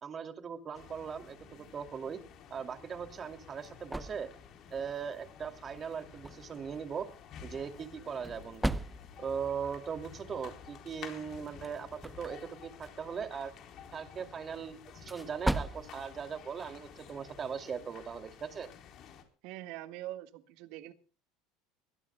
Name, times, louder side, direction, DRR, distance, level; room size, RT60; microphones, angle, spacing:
voice 1, 0.0-2.2 2.5-4.3 4.7-7.1 7.4-8.8 9.2-13.5 13.9-18.7, right 6 dB, 35° right, 7 dB, 2.5 m, -39 dB
sound 1, 0.7-19.2, left 8 dB, 50° left, 3.9 m, -52 dB
sound 2, 3.0-17.5, right 1 dB, 5° right, 0.7 m, -42 dB
voice 2, 19.4-20.9, right 14 dB, 70° right, 9 dB, 1.7 m, -43 dB
23.5 x 18.5 x 2.3 m, 0.38 s
supercardioid pair, 110°, 0 cm